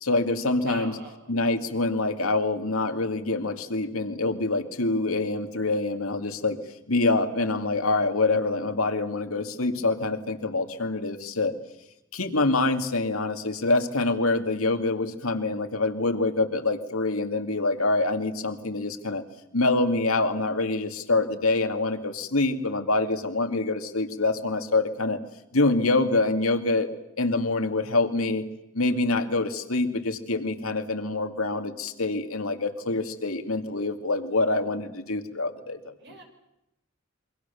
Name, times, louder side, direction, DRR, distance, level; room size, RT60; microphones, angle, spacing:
voice 1, 0.0-0.9 1.3-6.6 6.9-11.5 12.1-19.2 19.5-25.2 25.5-26.9 27.2-28.4 28.7-35.9, left 2 dB, 85° left, 6 dB, 2.4 m, -25 dB
voice 2, 0.6-1.3 36.0-36.2, right 2 dB, 55° right, 4 dB, 5.8 m, -42 dB
28.0 x 23.5 x 7.1 m, 0.87 s
head